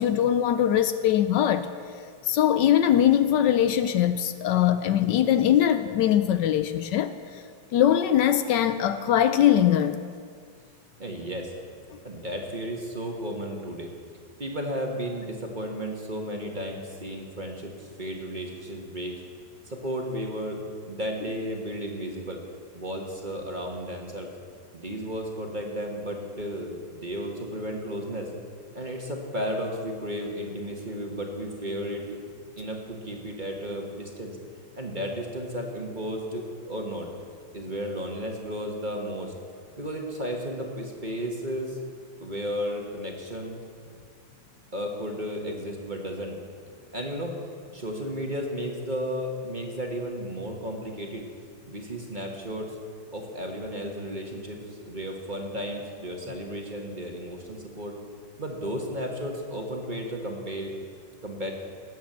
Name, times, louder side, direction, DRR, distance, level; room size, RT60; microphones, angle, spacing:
voice 1, 0.0-1.7 2.2-7.4 7.7-10.0, left 10 dB, 75° left, 11 dB, 1.2 m, -22 dB
voice 2, 11.0-11.5 12.0-13.9 14.4-19.2 19.6-20.6 20.9-22.4 22.7-24.3 24.7-28.3 28.7-32.2 32.6-34.4 34.8-37.1 37.5-39.3 39.8-41.8 42.2-43.6 44.7-46.4 46.9-47.4 47.7-51.2 51.7-52.8 53.1-54.6 54.8-58.0 58.4-60.7 61.2-61.5, equal, 25° right, 1 dB, 1.5 m, -33 dB
18.5 x 7.5 x 7.4 m, 2.1 s
omnidirectional pair, 2.0 m